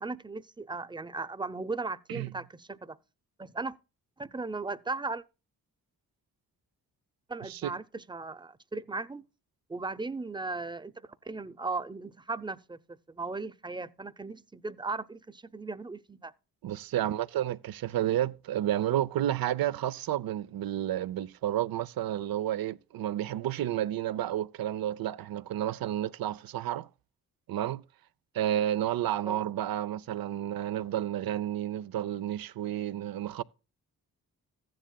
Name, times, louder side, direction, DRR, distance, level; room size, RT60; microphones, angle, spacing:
voice 1, 0.0-3.0 3.4-3.8 4.2-5.2 7.3-9.2 9.7-12.8 13.1-16.3 29.2-29.4, right 3 dB, 15° right, 0.7 m, -37 dB
voice 2, 16.6-26.9 27.5-27.8 28.3-33.4, right 12 dB, 80° right, 0.6 m, -31 dB
14.5 x 10.5 x 2.2 m
cardioid pair, 65°, 35 cm